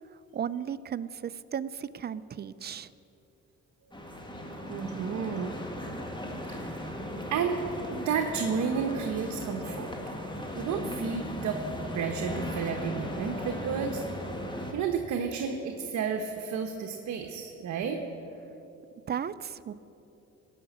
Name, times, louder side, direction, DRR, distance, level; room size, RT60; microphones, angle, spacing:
voice 1, 0.3-2.9 19.1-19.7, right 8 dB, 35° right, 15 dB, 0.4 m, -35 dB
sound 1, 3.9-14.7, left 1 dB, 15° left, 1.8 m, -37 dB
voice 2, 4.7-5.5 6.5-6.9 7.3-7.6 7.9-9.9 10.5-11.6 11.9-14.0 14.7-18.0, right 6 dB, 70° right, 4 dB, 1.0 m, -31 dB
17.0 x 6.0 x 8.4 m, 2.9 s
cardioid pair, 90°, 30 cm